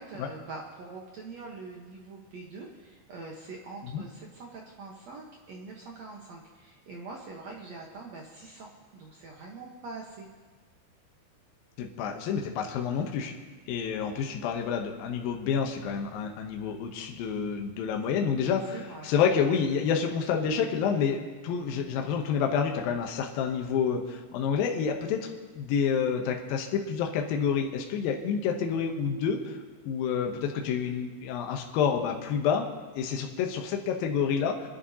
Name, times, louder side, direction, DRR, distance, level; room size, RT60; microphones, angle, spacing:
voice 1, 0.0-10.3 18.7-19.1, right 3 dB, 70° right, -1 dB, 1.6 m, -44 dB
voice 2, 11.8-13.3 13.7-29.6 29.9-32.7 33.0-34.7, left 7 dB, 75° left, 2 dB, 2.4 m, -28 dB
29.0 x 11.0 x 2.8 m, 1.4 s
omnidirectional pair, 4.9 m